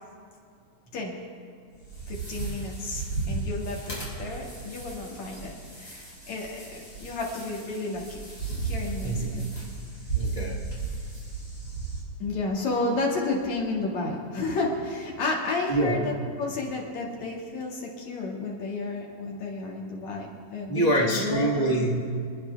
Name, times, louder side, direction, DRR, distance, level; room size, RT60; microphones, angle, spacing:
sound 1, 1.7-12.0, right 4 dB, 20° left, 4.9 m, -35 dB
voice 1, 2.1-8.2 8.6-9.5 12.2-21.9, left 3 dB, 65° left, -2 dB, 3.4 m, -32 dB
voice 2, 9.0-9.3 10.1-10.6 15.7-16.0 20.7-22.0, right 1 dB, 55° right, -4 dB, 0.4 m, -25 dB
27.5 x 9.9 x 3.5 m, 2.2 s
omnidirectional pair, 3.4 m